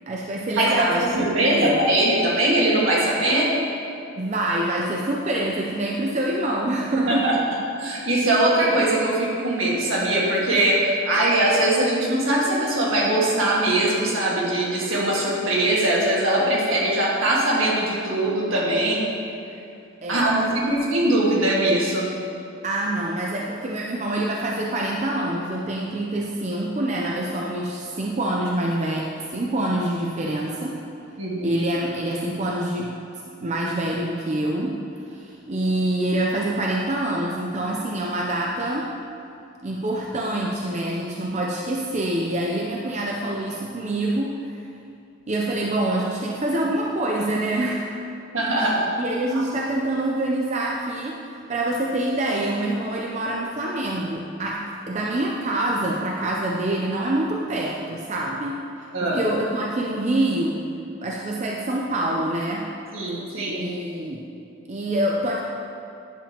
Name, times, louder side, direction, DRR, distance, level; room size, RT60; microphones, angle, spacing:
voice 1, 0.1-1.8 4.2-7.6 20.0-20.4 22.6-30.8 31.4-33.0 33.4-34.8 35.1-38.9 39.6-44.7 45.3-48.0 49.0-58.6 59.0-60.6 61.0-62.7 63.5-64.2 64.7-65.4, right 1 dB, 35° right, -2 dB, 0.5 m, -26 dB
voice 2, 0.6-3.5 7.1-7.3 7.8-19.0 20.1-22.1 31.2-31.6 48.3-48.9 58.9-59.2 62.9-63.6, right 1 dB, 75° right, -5 dB, 1.7 m, -21 dB
10.0 x 7.0 x 2.9 m, 2.6 s
head